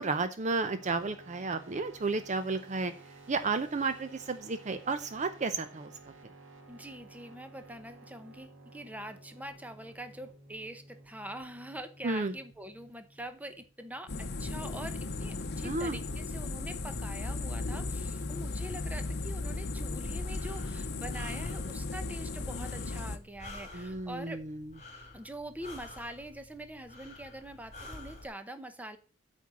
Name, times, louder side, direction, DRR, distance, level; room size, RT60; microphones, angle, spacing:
voice 1, 0.0-2.9 3.3-5.9 12.0-12.3 15.6-16.0 23.7-24.7, right 3 dB, 40° right, 10 dB, 0.6 m, -32 dB
sound 1, 0.6-14.1, right 2 dB, 85° right, 1.7 m, -54 dB
voice 2, 6.7-24.4 25.1-29.0, right 1 dB, 10° right, 9 dB, 0.9 m, -44 dB
sound 2, 14.1-23.2, left 3 dB, 60° left, 0.8 m, -36 dB
Breathing, 19.9-28.3, left 2 dB, 40° left, 2.5 m, -50 dB
8.4 x 4.5 x 7.1 m, 0.37 s
head